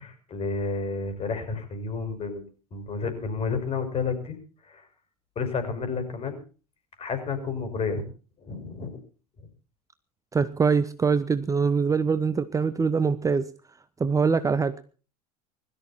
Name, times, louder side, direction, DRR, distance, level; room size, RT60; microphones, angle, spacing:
voice 1, 0.0-2.4 2.7-4.4 4.6-4.9 5.4-6.4 7.0-8.1 8.4-9.0, left 4 dB, 30° left, 9 dB, 6.0 m, -31 dB
voice 2, 10.3-13.5 14.0-14.8, right 5 dB, 15° right, 13 dB, 1.0 m, -23 dB
21.5 x 13.5 x 4.4 m, 0.38 s
figure-of-eight pair, 75°, 20 cm